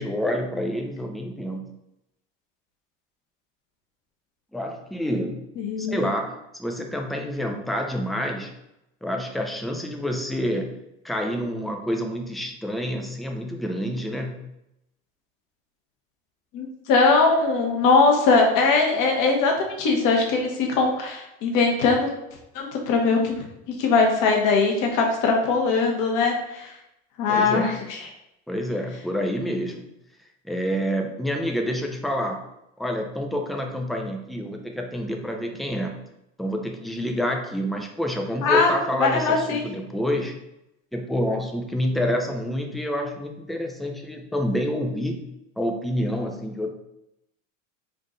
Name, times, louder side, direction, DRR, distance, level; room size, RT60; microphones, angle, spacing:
voice 1, 0.0-1.7 4.5-5.5 5.8-8.5 9.0-10.7 11.0-14.4 27.3-27.8 28.5-29.9 30.4-32.4 32.8-35.9 36.4-40.4 40.9-45.2 45.6-46.7, equal, ahead, 2 dB, 0.3 m, -28 dB
voice 2, 5.6-6.0 16.5-19.5 19.8-22.1 22.5-23.4 23.7-26.7 27.2-27.7 38.4-39.6, left 4 dB, 55° left, 1 dB, 1.1 m, -21 dB
3.7 x 2.6 x 3.7 m, 0.86 s
supercardioid pair, 100°, 38 cm